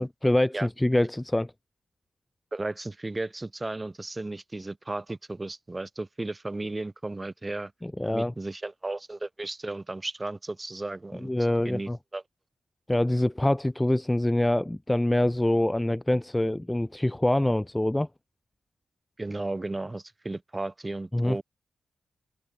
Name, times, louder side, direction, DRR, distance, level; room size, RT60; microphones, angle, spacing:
voice 1, 0.0-1.5 7.8-8.3 11.2-12.0 12.9-18.1 21.1-21.4, left 1 dB, 10° left, 0.4 m, -25 dB
voice 2, 2.5-7.7 8.1-11.3 11.6-12.2 19.2-21.4, right 2 dB, 15° right, 7.5 m, -34 dB
open air
wide cardioid pair, 160°, 0 cm